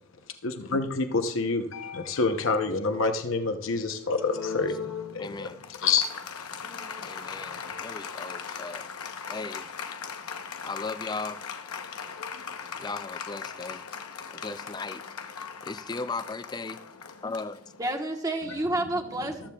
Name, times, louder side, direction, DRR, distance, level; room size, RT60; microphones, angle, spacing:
voice 1, 0.4-4.8 5.1-6.0, left 4 dB, 65° left, 6 dB, 0.8 m, -27 dB
Applause, 4.0-18.1, left 6 dB, 90° left, 0.9 m, -39 dB
voice 2, 5.2-5.6 7.0-8.9 9.3-9.7 10.6-11.4 12.8-13.9 14.3-15.0 15.6-16.8 17.2-17.6, left 3 dB, 20° left, 13 dB, 0.4 m, -37 dB
voice 3, 6.6-7.1 17.8-19.5, right 1 dB, 15° right, 3 dB, 1.2 m, -30 dB
14.5 x 13.0 x 2.3 m, 0.74 s
head